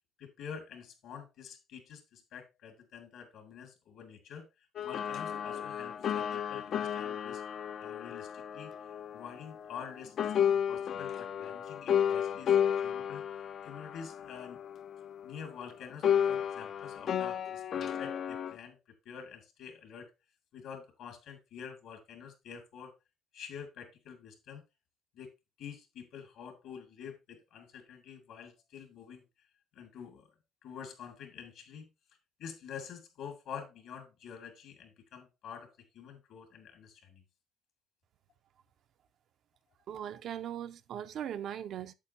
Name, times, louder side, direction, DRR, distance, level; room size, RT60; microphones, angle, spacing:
voice 1, 0.2-4.5 4.8-7.4 7.8-8.7 9.1-13.2 13.6-14.6 15.2-18.8 19.0-20.1 20.5-22.9 23.3-24.6 25.1-25.3 25.6-29.2 29.7-30.3 30.6-31.9 32.4-37.2, left 7 dB, 75° left, 2.2 m, -47 dB
sound 1, 4.8-9.9 10.2-15.6 16.0-18.6, left 9 dB, 55° left, 0.4 m, -33 dB
voice 2, 39.9-41.9, right 9 dB, 60° right, 0.5 m, -39 dB
8.5 x 7.4 x 2.7 m
cardioid pair, 110°, 0 cm